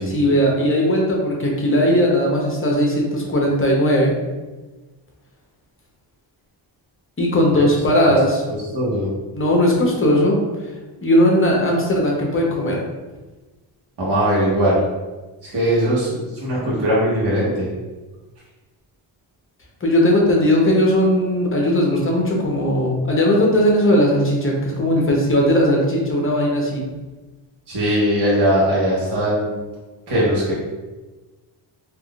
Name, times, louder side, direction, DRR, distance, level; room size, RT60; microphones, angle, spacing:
voice 1, 0.1-4.1 7.2-8.5 9.3-10.4 11.0-12.8 19.8-26.8, equal, 25° left, -2 dB, 0.7 m, -18 dB
voice 2, 8.5-9.1 14.0-14.8 15.4-17.7 27.7-29.6 30.1-30.5, equal, 55° right, -7 dB, 1.1 m, -20 dB
3.5 x 2.5 x 2.3 m, 1.2 s
cardioid pair, 95°, 48 cm